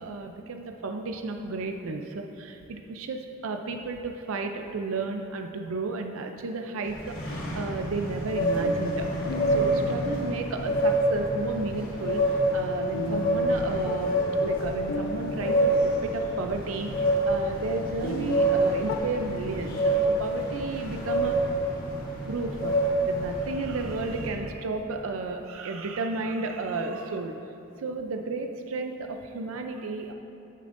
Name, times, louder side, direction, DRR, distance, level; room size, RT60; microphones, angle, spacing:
voice 1, 0.0-9.1 9.5-12.3 12.5-21.4 22.3-22.8 23.1-27.4 27.8-30.1, right 3 dB, 80° right, 4 dB, 0.5 m, -33 dB
sound 1, 6.8-24.3, right 1 dB, 45° left, 1.6 m, -27 dB
sound 2, 8.0-19.0, left 1 dB, 65° left, 0.5 m, -38 dB
14.0 x 6.9 x 2.6 m, 2.8 s
head